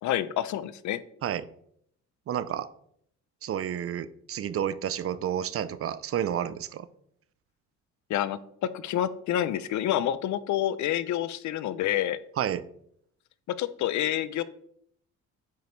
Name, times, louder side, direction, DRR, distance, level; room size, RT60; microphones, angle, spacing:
voice 1, 0.0-1.0 8.1-8.4 8.7-12.2 13.6-14.4, left 11 dB, 70° left, 15 dB, 0.5 m, -28 dB
voice 2, 2.3-2.7 3.4-6.9 12.4-12.6, right 9 dB, 50° right, 16 dB, 0.5 m, -30 dB
9.0 x 5.1 x 3.1 m, 0.69 s
cardioid pair, 90°, 30 cm